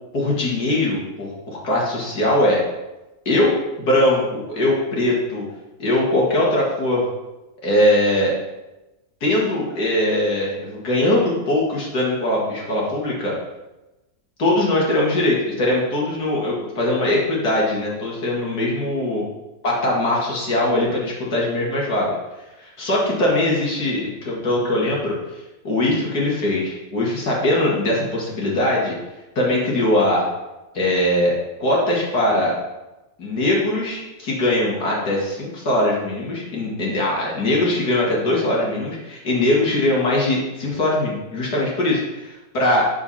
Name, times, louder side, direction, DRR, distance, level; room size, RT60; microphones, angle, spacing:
voice 1, 0.1-2.6 3.3-5.5 5.8-7.1 7.6-8.3 9.2-13.3 14.4-19.2 19.6-22.1 22.6-29.0 29.4-30.2 30.7-32.5 33.2-42.9, left 1 dB, 75° left, -3 dB, 2.7 m, -21 dB
8.8 x 7.0 x 4.2 m, 1.0 s
omnidirectional pair, 1.7 m